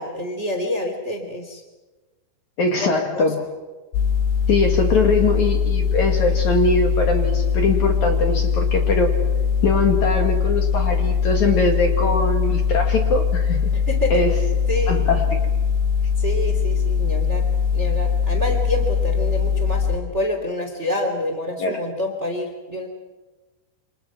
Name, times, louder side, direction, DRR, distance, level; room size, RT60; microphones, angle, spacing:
voice 1, 0.0-1.6 2.8-3.5 13.7-14.2 14.7-15.0 16.2-17.5 17.7-22.9, left 1 dB, 20° right, 4 dB, 2.4 m, -27 dB
voice 2, 2.6-3.4 4.5-9.1 9.6-13.7 14.1-14.3 14.9-15.4 21.6-21.7, left 3 dB, 50° left, 4 dB, 2.8 m, -21 dB
sound 1, 3.9-20.0, left 6 dB, 90° left, 3.6 m, -21 dB
28.0 x 26.0 x 6.0 m, 1.2 s
omnidirectional pair, 4.8 m